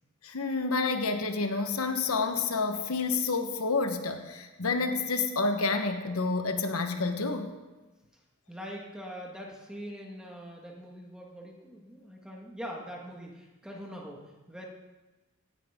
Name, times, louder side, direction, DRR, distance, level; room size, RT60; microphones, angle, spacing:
voice 1, 0.2-7.5, left 4 dB, 85° left, 6 dB, 1.2 m, -29 dB
voice 2, 8.5-14.7, equal, 5° right, -2 dB, 1.7 m, -43 dB
17.0 x 10.0 x 3.7 m, 1.2 s
head